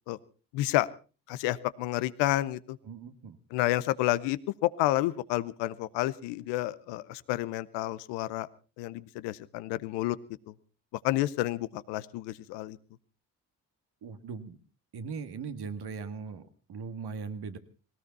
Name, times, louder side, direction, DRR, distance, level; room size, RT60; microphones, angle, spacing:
voice 1, 0.5-0.9 1.3-2.8 3.5-8.5 8.8-10.2 10.5-10.6 11.0-12.8, left 16 dB, 85° left, 17 dB, 0.8 m, -30 dB
voice 2, 2.8-3.4 14.0-14.6 14.9-17.6, right 5 dB, 70° right, 9 dB, 1.9 m, -39 dB
19.0 x 18.5 x 4.1 m, 0.36 s
hypercardioid pair, 40°, 41 cm